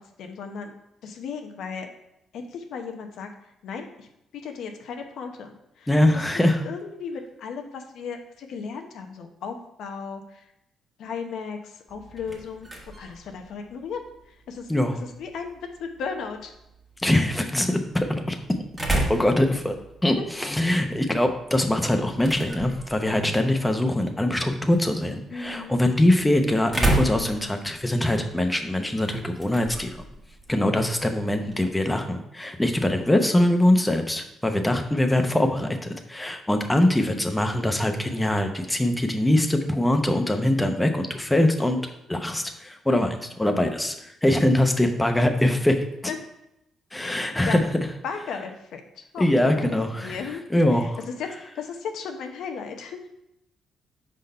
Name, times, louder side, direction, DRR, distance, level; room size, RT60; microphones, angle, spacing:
voice 1, 0.2-0.7 1.0-1.9 2.3-3.3 3.6-4.1 4.3-6.2 6.6-10.4 11.0-12.7 13.0-14.0 14.3-14.7 15.0-16.5 20.2-20.3 25.3-25.8 30.7-31.0 36.8-36.9 46.1-46.2 47.0-47.6 48.0-49.6 49.9-50.4 50.7-50.8 51.2-53.0, left 5 dB, 75° left, 5 dB, 0.8 m, -35 dB
voice 2, 5.9-6.6 14.7-15.0 17.0-18.4 19.1-19.8 20.0-29.9 30.5-41.8 42.1-45.8 46.9-47.6 49.2-50.2 50.5-51.0, left 1 dB, 10° left, 5 dB, 0.8 m, -23 dB
sound 1, 11.9-31.7, right 1 dB, 15° right, 1.4 m, -34 dB
5.0 x 4.0 x 5.5 m, 0.83 s
cardioid pair, 90°, 0 cm